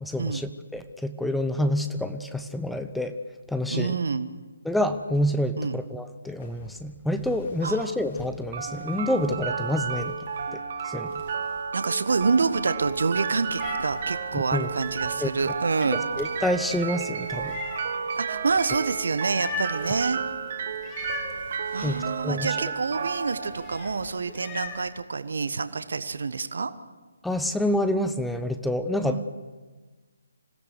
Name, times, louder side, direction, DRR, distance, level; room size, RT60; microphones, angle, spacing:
voice 1, 0.0-3.1 3.5-4.0 4.6-10.2 10.5-10.6 10.9-11.1 14.3-14.7 15.2-15.3 16.2-17.6 21.8-22.0 22.2-22.6 27.2-29.2, left 1 dB, ahead, 8 dB, 0.7 m, -27 dB
voice 2, 3.7-4.3 5.6-5.8 7.6-7.9 11.7-16.0 18.2-20.2 21.7-26.7 29.0-29.2, right 4 dB, 60° right, 12 dB, 1.1 m, -27 dB
sound 1, 6.4-20.4 20.9-22.1 23.2-24.4 24.6-24.9, left 2 dB, 40° left, 3.4 m, -49 dB
sound 2, 8.5-24.5, right 6 dB, 40° right, 1.7 m, -32 dB
Meow, 12.9-24.9, left 4 dB, 20° left, 3.3 m, -41 dB
26.0 x 16.5 x 6.6 m, 1.3 s
figure-of-eight pair, 145°, 0 cm